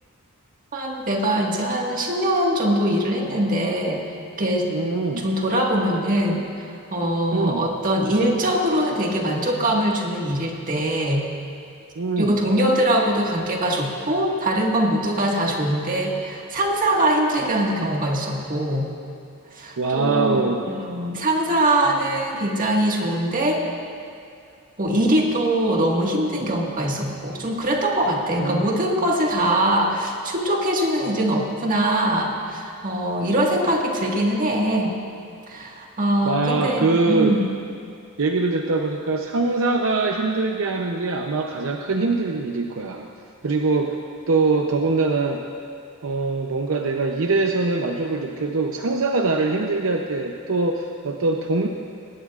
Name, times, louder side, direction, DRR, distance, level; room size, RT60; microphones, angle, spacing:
voice 1, 0.7-4.0 4.4-4.7 5.2-11.3 12.2-18.9 19.5-20.5 20.7-23.6 24.8-35.0 35.5-37.5, right 1 dB, 40° right, -1 dB, 1.8 m, -22 dB
voice 2, 4.7-5.3 7.3-7.6 12.0-12.4 19.8-20.6 28.4-28.7 36.2-37.4 38.2-43.1 43.4-44.0 44.3-45.4 46.0-51.7, right 3 dB, 65° right, 2 dB, 0.7 m, -23 dB
20.0 x 17.5 x 2.5 m, 2.5 s
head